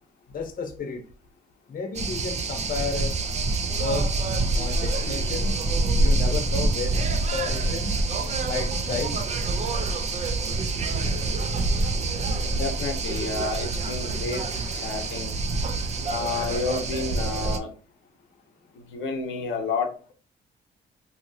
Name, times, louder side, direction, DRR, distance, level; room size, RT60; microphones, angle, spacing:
voice 1, 0.3-1.0 1.7-3.1 3.8-4.3 4.5-5.5 6.0-7.9 8.5-9.1, left 4 dB, 45° left, 4 dB, 0.8 m, -32 dB
sound 1, 1.9-17.6, right 2 dB, 35° right, 0.4 m, -26 dB
voice 2, 12.5-14.4 14.7-15.4 16.1-17.7 18.7-20.1, left 4 dB, 90° left, 4 dB, 0.8 m, -30 dB
2.8 x 2.7 x 2.7 m, 0.37 s
cardioid pair, 105°, 19 cm